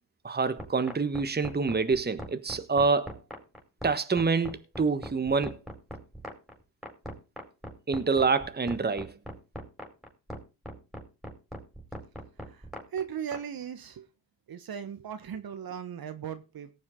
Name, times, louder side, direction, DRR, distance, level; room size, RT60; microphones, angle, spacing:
voice 1, 0.2-3.2 3.8-5.6 7.9-9.1, right 4 dB, 20° right, 1.4 m, -26 dB
sound 1, 0.6-13.4, equal, ahead, 4.8 m, -40 dB
voice 2, 12.4-14.1 14.5-16.7, right 8 dB, 50° right, 1.4 m, -38 dB
18.0 x 7.2 x 3.8 m
supercardioid pair, 60°, 44 cm